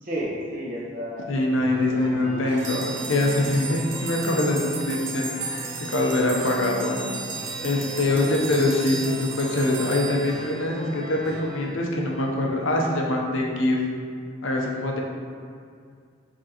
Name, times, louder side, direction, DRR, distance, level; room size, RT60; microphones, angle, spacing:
voice 1, 0.0-1.3 1.9-2.7 8.1-8.4, equal, 45° right, -5 dB, 0.9 m, -33 dB
voice 2, 1.3-7.0 7.6-13.8 14.4-15.0, left 2 dB, 80° left, 0 dB, 0.7 m, -24 dB
sound 1, 1.6-11.7, equal, 15° right, 1.1 m, -38 dB
sound 2, 2.6-11.1, right 4 dB, 75° right, 0.7 m, -35 dB
5.0 x 3.7 x 2.8 m, 2.3 s
head